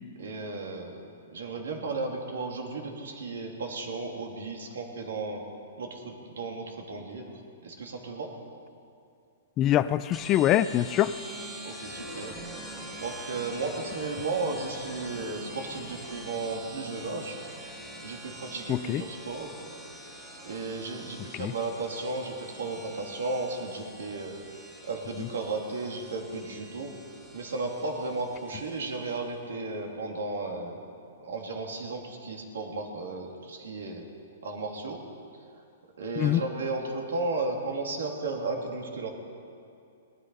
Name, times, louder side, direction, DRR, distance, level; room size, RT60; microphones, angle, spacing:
voice 1, 0.2-5.4 5.8-8.3 11.6-12.4 13.0-17.4 18.0-19.5 20.4-24.3 24.9-26.9 27.3-30.9 31.2-34.1 34.4-35.0 35.5-35.6 36.0-39.1, right 3 dB, 85° right, 1 dB, 2.6 m, -34 dB
voice 2, 9.6-11.1 18.7-19.0 21.4-21.5 36.2-36.4, left 12 dB, 20° left, 15 dB, 0.3 m, -24 dB
sound 1, 10.1-29.3, right 1 dB, 5° right, 2.0 m, -44 dB
18.5 x 12.5 x 5.5 m, 2.5 s
hypercardioid pair, 165°, 0 cm